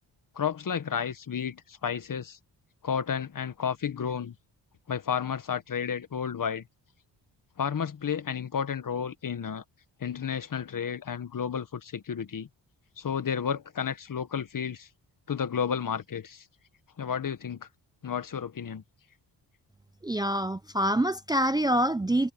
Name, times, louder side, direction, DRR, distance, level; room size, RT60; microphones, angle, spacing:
voice 1, 0.3-2.4 2.8-4.3 4.9-6.6 7.6-9.6 10.0-12.5 13.0-14.9 15.3-16.4 17.0-17.7 18.0-18.8, left 7 dB, 50° left, 1.5 m, -32 dB
voice 2, 20.0-22.3, right 1 dB, 10° right, 0.6 m, -26 dB
cardioid pair, 90°, 43 cm